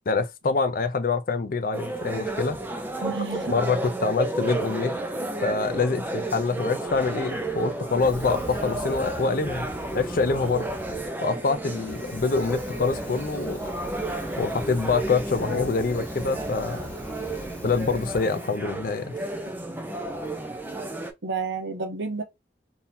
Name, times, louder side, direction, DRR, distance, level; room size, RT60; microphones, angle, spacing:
voice 1, 0.1-2.6 3.5-5.0 5.4-10.7 11.2-13.6 14.4-16.9 17.6-19.2, left 4 dB, 50° left, 0.5 m, -25 dB
sound 1, 1.7-21.1, right 2 dB, 10° right, 0.5 m, -32 dB
voice 2, 3.0-3.5 21.2-22.2, right 4 dB, 75° right, 1.0 m, -30 dB
Fire, 7.9-11.1 11.5-18.6, equal, 10° left, 0.9 m, -40 dB
3.8 x 2.8 x 2.6 m
head